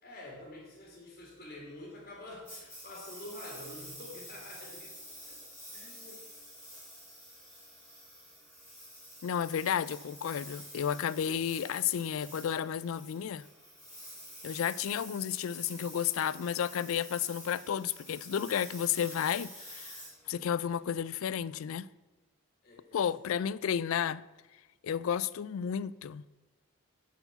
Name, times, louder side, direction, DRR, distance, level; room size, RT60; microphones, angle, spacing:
voice 1, 0.0-5.4 5.7-6.3 22.6-23.2, left 1 dB, 40° left, 2.1 m, -48 dB
Engine, 2.5-20.9, equal, 5° left, 3.5 m, -49 dB
voice 2, 9.2-13.4 14.4-21.9 22.9-24.2 24.8-26.2, left 8 dB, 75° left, 0.3 m, -32 dB
9.6 x 4.8 x 7.9 m
head